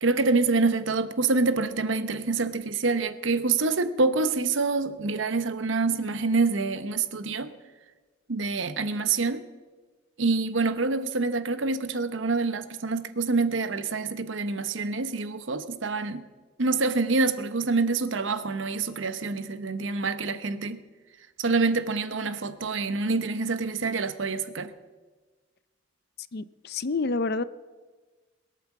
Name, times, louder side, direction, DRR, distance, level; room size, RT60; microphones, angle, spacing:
voice 1, 0.0-7.5 8.3-9.4 10.2-16.2 16.6-20.8 21.4-24.7, right 3 dB, 70° right, 11 dB, 0.9 m, -26 dB
voice 2, 26.3-27.4, left 3 dB, 55° left, 16 dB, 0.5 m, -28 dB
22.0 x 8.4 x 7.3 m, 1.4 s
head